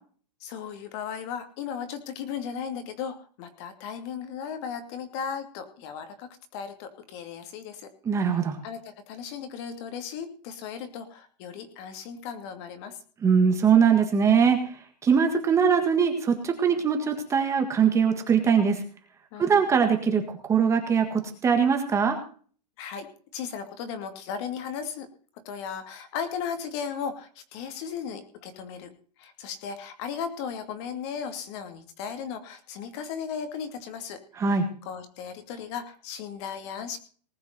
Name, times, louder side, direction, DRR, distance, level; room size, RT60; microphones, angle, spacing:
voice 1, 0.4-7.9 8.2-8.3 8.6-13.0 19.3-19.6 22.8-23.1 23.3-25.1 25.4-28.9 29.2-37.0, left 7 dB, 40° left, 8 dB, 2.7 m, -36 dB
voice 2, 8.1-8.6 13.2-14.8 15.0-18.8 19.4-22.2 34.4-34.7, right 6 dB, 15° right, 5 dB, 1.7 m, -22 dB
19.5 x 7.0 x 6.7 m, 0.43 s
supercardioid pair, 160°, 21 cm